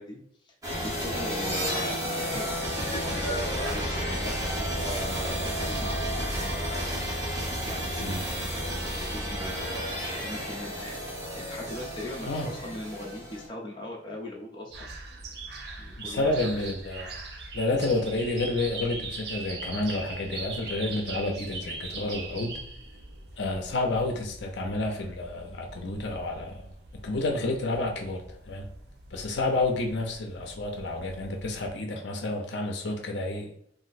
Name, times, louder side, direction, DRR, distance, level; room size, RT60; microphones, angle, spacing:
voice 1, 0.0-8.7 9.1-11.0 11.3-14.9 15.8-16.6 29.8-30.0, left 1 dB, 25° left, -2 dB, 0.6 m, -40 dB
sound 1, 0.6-13.5, equal, 20° right, 0.8 m, -31 dB
sound 2, 14.7-31.7, right 3 dB, 60° right, 0.5 m, -41 dB
voice 2, 16.0-17.2 17.5-22.6 23.4-26.7 27.0-28.6 29.1-33.5, left 2 dB, 70° left, 2 dB, 0.5 m, -30 dB
2.6 x 2.1 x 4.0 m, 0.69 s
head